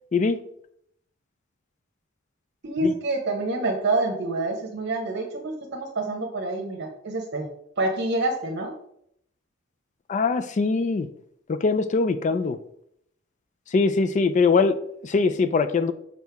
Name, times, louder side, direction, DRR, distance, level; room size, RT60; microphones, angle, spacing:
voice 1, 2.6-7.5 7.8-8.7, right 2 dB, 60° right, 1 dB, 1.0 m, -27 dB
voice 2, 10.1-11.1 11.5-12.6 13.7-14.8 15.0-15.9, left 4 dB, 40° left, 12 dB, 0.3 m, -22 dB
6.4 x 5.2 x 3.4 m, 0.71 s
head